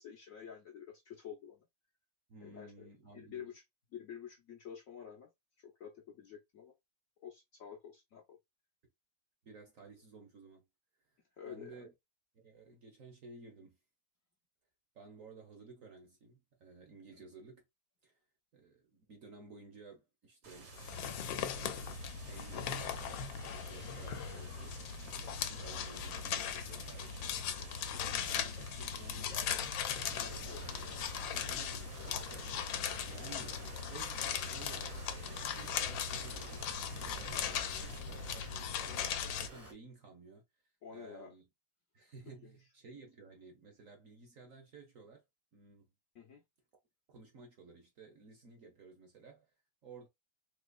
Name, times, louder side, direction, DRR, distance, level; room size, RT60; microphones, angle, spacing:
voice 1, 0.0-1.6 2.4-2.9 3.1-3.6 3.9-5.3 5.6-6.7 7.2-8.4 11.4-11.8 17.1-17.2 27.9-28.2 30.2-30.6 40.8-41.3 46.1-46.4, left 8 dB, 60° left, 0.9 m, -49 dB
voice 2, 2.3-3.5 9.4-10.6 11.4-11.9 12.4-13.8 14.9-17.6 18.0-18.2 18.5-20.8 21.5-23.3 23.5-24.8 25.2-27.2 28.0-29.7 30.1-30.8 31.3-33.5 33.9-40.4 40.9-41.5 41.9-45.2 45.5-45.9 47.1-49.5 49.8-50.1, right 4 dB, 55° right, 1.0 m, -55 dB
sound 1, 20.4-38.0, right 5 dB, 80° right, 2.0 m, -52 dB
sound 2, 20.8-39.5, left 8 dB, 80° left, 1.3 m, -39 dB
sound 3, 30.0-39.7, equal, 20° right, 0.4 m, -52 dB
3.9 x 2.8 x 2.3 m
omnidirectional pair, 2.1 m